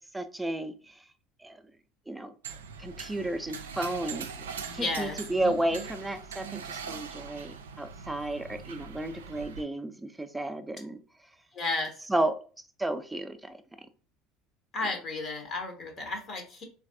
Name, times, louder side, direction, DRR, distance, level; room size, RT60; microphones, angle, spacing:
voice 1, 0.1-1.1 1.4-1.6 2.1-2.3 2.8-11.0 12.1-12.3 12.8-13.6, right 1 dB, 10° right, 0.4 m, -32 dB
sound 1, 2.4-9.6, right 6 dB, 85° right, 0.3 m, -41 dB
voice 2, 4.6-5.1 5.4-5.6 11.5-11.9 14.7-16.6, left 3 dB, 50° left, 0.8 m, -33 dB
3.2 x 2.3 x 2.6 m
hypercardioid pair, 70°, 0 cm